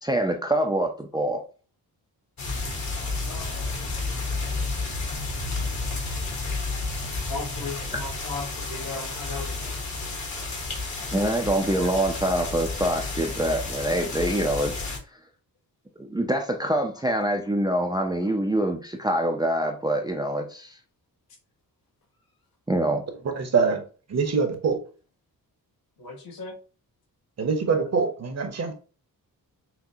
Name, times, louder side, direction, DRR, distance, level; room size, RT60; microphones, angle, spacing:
voice 1, 0.0-1.4 11.1-14.9 16.0-20.8 22.7-23.0, right 1 dB, 10° right, 3 dB, 0.4 m, -25 dB
sound 1, 2.4-15.0, left 3 dB, 50° left, 1.1 m, -31 dB
voice 2, 3.0-3.6 7.3-9.7 26.0-26.5, left 3 dB, 75° left, 3 dB, 1.1 m, -37 dB
voice 3, 23.4-23.8 24.1-24.8 27.4-28.7, right 5 dB, 45° right, 5 dB, 0.8 m, -24 dB
6.0 x 2.1 x 2.7 m, 0.37 s
wide cardioid pair, 145°, 36 cm